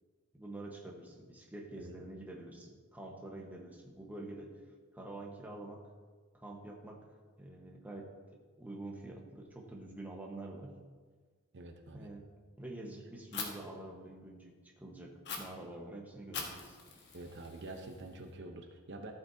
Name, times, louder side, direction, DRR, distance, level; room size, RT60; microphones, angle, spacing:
voice 1, 0.3-4.6 4.9-5.8 6.3-7.0 7.4-10.8 11.9-16.8, right 2 dB, 10° right, -1 dB, 1.3 m, -47 dB
voice 2, 11.5-12.1 17.1-19.1, right 2 dB, 55° right, 4 dB, 0.8 m, -47 dB
Fire, 13.3-13.5 15.2-15.4 16.3-18.3, left 5 dB, 55° left, 1.6 m, -43 dB
14.5 x 8.6 x 2.8 m, 1.5 s
head